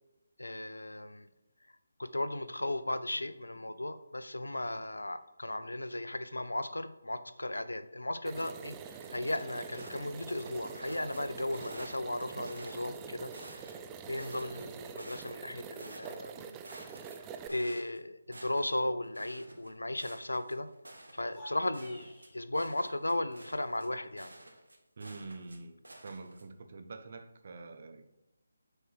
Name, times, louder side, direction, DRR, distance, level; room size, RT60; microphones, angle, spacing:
voice 1, 0.4-1.3 2.0-13.8 14.1-16.6 17.2-20.7 21.1-24.3, left 1 dB, 85° left, 12 dB, 0.6 m, -36 dB
sound 1, 8.2-17.5, right 7 dB, 15° right, 0.4 m, -46 dB
sound 2, 9.0-9.1 9.6-11.2 11.5-12.9 13.3-13.8 14.2-15.5 15.8-18.0 18.3-18.8 19.1-25.6 25.8-26.4, right 1 dB, 80° right, 1.3 m, -51 dB
sound 3, 21.2-22.4, equal, 15° left, 1.9 m, -51 dB
voice 2, 25.0-28.2, right 3 dB, 45° right, 8 dB, 0.8 m, -46 dB
6.6 x 4.5 x 4.6 m, 0.94 s
figure-of-eight pair, 155°, 0 cm